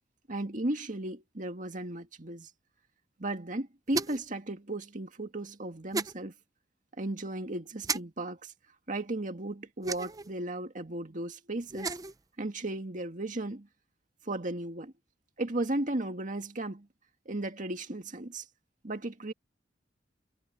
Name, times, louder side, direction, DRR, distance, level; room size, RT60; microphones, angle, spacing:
voice 1, 0.3-2.5 3.2-6.3 7.0-8.5 8.9-12.0 12.4-13.7 14.3-14.9 15.4-16.9 17.3-18.4 18.8-19.3, right 1 dB, 45° right, 2.0 m, -35 dB
sound 1, 3.9-4.3 5.9-6.1 7.8-8.0 9.8-10.3 11.6-12.2, right 4 dB, 20° right, 0.5 m, -33 dB
head